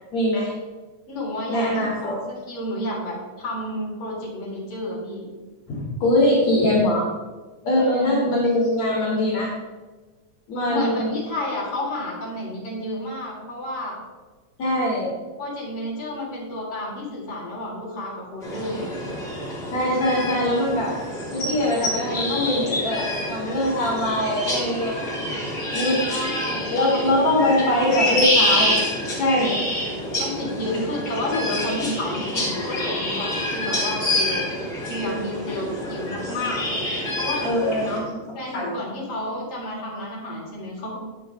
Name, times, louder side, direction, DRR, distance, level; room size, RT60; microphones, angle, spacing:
voice 1, 0.1-0.5 1.5-2.2 5.7-7.1 7.6-9.5 10.5-11.1 14.6-15.1 19.7-20.9 21.3-25.0 25.7-26.0 26.7-28.8 29.1-29.6 30.7-30.8 37.4-38.8, left 1 dB, 70° left, -5 dB, 3.7 m, -22 dB
voice 2, 1.1-5.2 7.8-8.3 10.6-14.0 15.4-18.9 26.1-28.0 30.2-34.4 34.9-36.6 37.2-37.5 38.3-41.0, left 1 dB, 50° left, -5 dB, 4.6 m, -31 dB
sound 1, 18.4-38.0, left 1 dB, 35° left, 3.9 m, -27 dB
19.5 x 7.2 x 3.3 m, 1.3 s
omnidirectional pair, 3.3 m